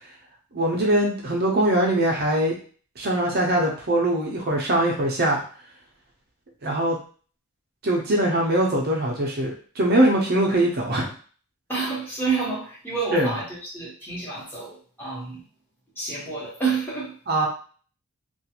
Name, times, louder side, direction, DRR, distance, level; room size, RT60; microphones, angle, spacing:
voice 1, 0.5-2.6 3.0-5.4 6.6-7.0 7.8-11.1 13.1-13.3 17.3-17.5, right 1 dB, 45° right, -1 dB, 0.6 m, -22 dB
voice 2, 11.7-15.4 15.9-17.1, right 4 dB, 10° left, -7 dB, 1.1 m, -29 dB
2.4 x 2.4 x 2.8 m, 0.41 s
head